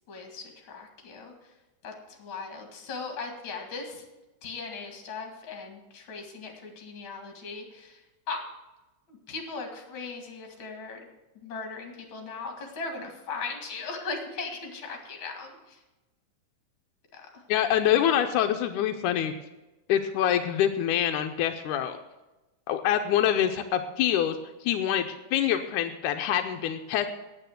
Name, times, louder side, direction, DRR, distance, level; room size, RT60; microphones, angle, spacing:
voice 1, 0.1-1.3 1.8-4.0 4.4-8.0 8.3-8.5 9.1-11.1 11.4-15.8 17.1-17.4, left 4 dB, 40° left, 3 dB, 2.8 m, -38 dB
voice 2, 17.5-19.3 19.9-22.0 22.7-24.4 24.6-27.1, left 10 dB, 85° left, 6 dB, 2.1 m, -25 dB
9.2 x 9.0 x 7.9 m, 1.0 s
omnidirectional pair, 3.6 m